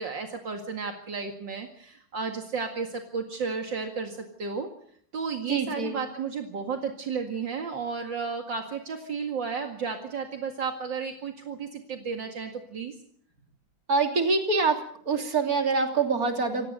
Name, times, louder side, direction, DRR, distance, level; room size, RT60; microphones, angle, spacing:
voice 1, 0.0-4.7 5.1-12.9, right 5 dB, 65° right, 3 dB, 2.7 m, -33 dB
voice 2, 5.5-6.0 13.9-14.8 15.1-16.7, right 4 dB, 45° right, 4 dB, 3.6 m, -25 dB
27.0 x 18.5 x 6.6 m, 0.62 s
omnidirectional pair, 2.2 m